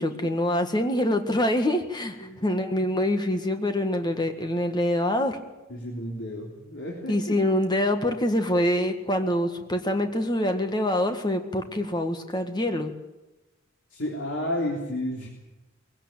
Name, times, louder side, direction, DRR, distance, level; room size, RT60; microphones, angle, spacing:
voice 1, 0.0-5.4 7.1-12.9, left 1 dB, 20° left, 6 dB, 1.7 m, -25 dB
voice 2, 2.2-2.5 5.7-7.4 13.9-15.3, left 1 dB, 65° left, -3 dB, 3.7 m, -32 dB
21.5 x 17.0 x 9.1 m, 1.1 s
head